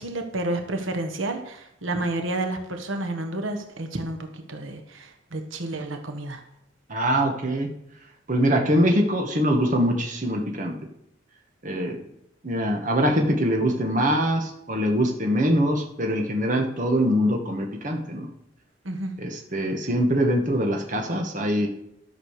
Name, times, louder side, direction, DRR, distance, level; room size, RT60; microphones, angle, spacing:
voice 1, 0.0-6.4 18.8-19.1, right 2 dB, 90° right, 5 dB, 1.4 m, -30 dB
voice 2, 6.9-7.7 8.3-10.8 11.6-12.0 12.4-18.3 19.2-21.7, equal, 40° right, 2 dB, 1.6 m, -23 dB
12.0 x 6.6 x 6.6 m, 0.77 s
head